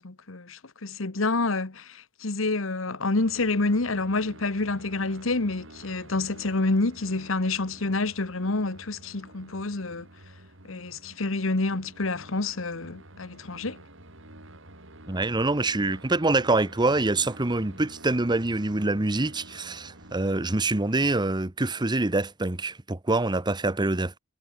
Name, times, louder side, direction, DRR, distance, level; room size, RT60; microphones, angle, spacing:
voice 1, 0.0-10.1 10.7-13.8, left 3 dB, 70° left, 1.4 m, -28 dB
sound 1, 3.1-21.1, right 1 dB, 65° right, 6.2 m, -49 dB
voice 2, 15.1-24.2, right 2 dB, 20° right, 1.0 m, -25 dB
head